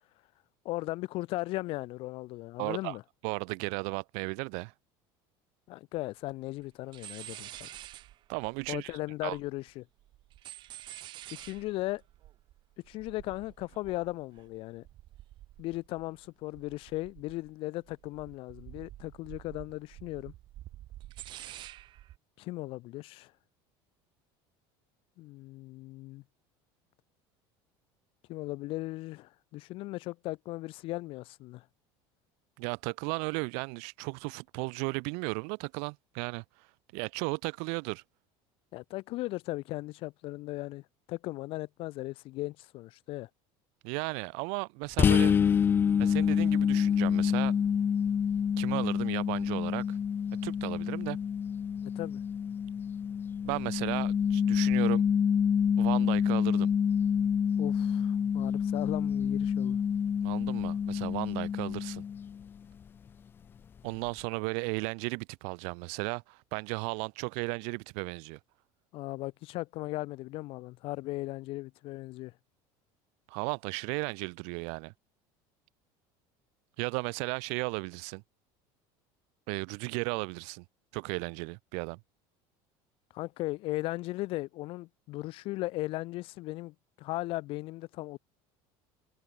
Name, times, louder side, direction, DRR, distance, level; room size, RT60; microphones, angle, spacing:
voice 1, 0.6-3.0 5.7-7.7 8.7-9.8 11.4-12.0 12.9-14.9 15.6-20.3 22.4-23.3 25.2-26.2 28.3-31.6 38.7-40.8 41.1-43.3 51.8-52.2 57.6-59.8 68.9-72.3 83.1-88.2, left 19 dB, 50° left, 3.0 m, -37 dB
voice 2, 2.6-3.0 3.2-4.7 8.3-8.9 9.2-9.4 32.6-36.4 36.9-38.0 43.8-45.3 46.0-47.5 48.6-50.0 50.4-51.2 53.4-55.0 55.8-56.7 60.2-62.0 63.8-68.4 73.3-74.9 76.8-78.2 79.5-80.6 80.9-82.0, right 40 dB or more, 70° right, 1.0 m, -35 dB
sound 1, 6.0-6.1 6.2-6.7 6.9-9.7 10.0-16.3 16.5-17.5 17.9-22.2, right 14 dB, 45° right, 2.1 m, -49 dB
sound 2, 45.0-62.5, left 7 dB, 20° left, 0.3 m, -27 dB
cardioid pair, 160°, 11 cm